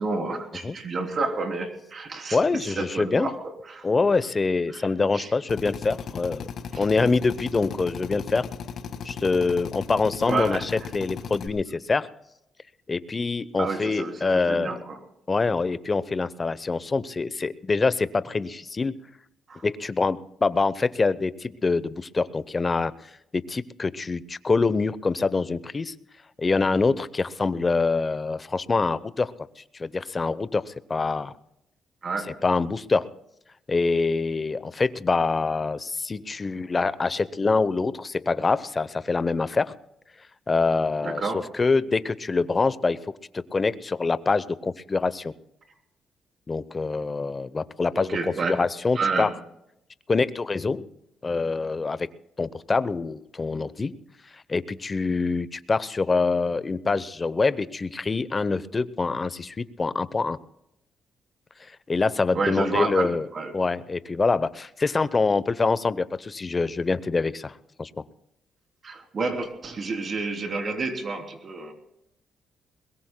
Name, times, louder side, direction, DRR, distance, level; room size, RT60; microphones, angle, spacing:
voice 1, 0.0-3.4 3.7-3.9 4.7-4.9 5.1-5.3 6.7-6.8 10.2-10.7 13.6-15.0 19.5-19.6 32.0-32.4 41.0-41.5 47.9-48.6 48.9-49.3 62.3-63.5 68.8-71.7, right 3 dB, 45° right, 4 dB, 3.1 m, -29 dB
voice 2, 2.3-3.3 3.8-6.5 6.8-8.5 9.0-12.1 12.9-14.8 15.3-18.9 19.6-22.9 23.3-25.9 26.4-29.3 29.8-31.3 32.4-33.1 33.7-39.7 40.5-43.0 43.3-45.3 46.5-49.3 50.1-50.9 51.2-52.1 52.4-53.9 54.5-60.4 61.9-63.3 63.5-67.9, left 4 dB, 30° left, 16 dB, 0.7 m, -25 dB
Drill, 5.5-11.5, left 6 dB, 65° left, 1.6 m, -36 dB
22.0 x 21.5 x 2.2 m, 0.79 s
cardioid pair, 90°, 0 cm